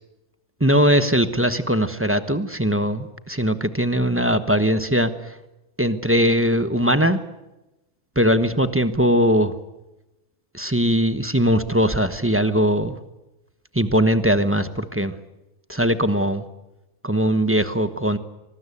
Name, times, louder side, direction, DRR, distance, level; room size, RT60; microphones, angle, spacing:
voice 1, 0.6-5.3 5.8-7.2 8.2-9.5 10.5-13.0 13.7-15.1 15.7-16.4 17.0-18.2, equal, 10° right, 10 dB, 1.0 m, -20 dB
25.0 x 19.5 x 8.5 m, 1.0 s
omnidirectional pair, 1.4 m